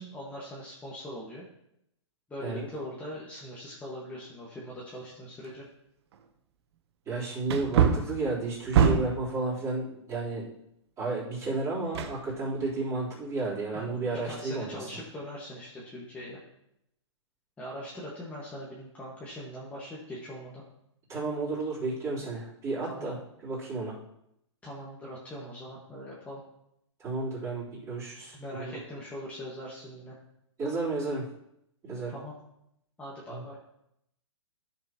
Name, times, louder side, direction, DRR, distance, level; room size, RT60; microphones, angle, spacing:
voice 1, 0.0-1.5 2.3-5.7 13.7-16.4 17.6-20.6 22.9-23.1 24.6-26.4 28.3-30.2 32.1-32.3 33.0-33.6, equal, 10° left, -6 dB, 1.6 m, -41 dB
Wood, 5.4-5.5 6.1-6.2 7.4-9.3 11.9-12.7 13.1-13.2, right 7 dB, 60° right, 1.0 m, -25 dB
voice 2, 7.1-10.5 11.0-14.9 21.1-23.2 23.4-24.0 27.0-28.8 30.6-31.3 31.8-32.1 33.3-33.4, right 3 dB, 20° right, -8 dB, 3.8 m, -32 dB
13.5 x 6.8 x 3.0 m, 0.78 s
hypercardioid pair, 145°, 16 cm